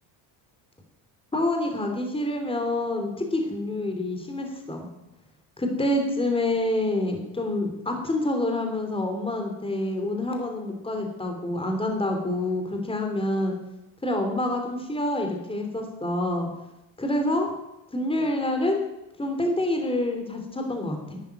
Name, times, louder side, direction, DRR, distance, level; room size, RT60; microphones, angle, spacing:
voice 1, 1.3-4.9 5.6-13.6 14.0-16.5 17.0-17.5 17.9-18.8 19.2-21.2, left 1 dB, 10° left, 3 dB, 3.1 m, -27 dB
12.0 x 9.1 x 9.5 m, 0.91 s
cardioid pair, 110°, 45 cm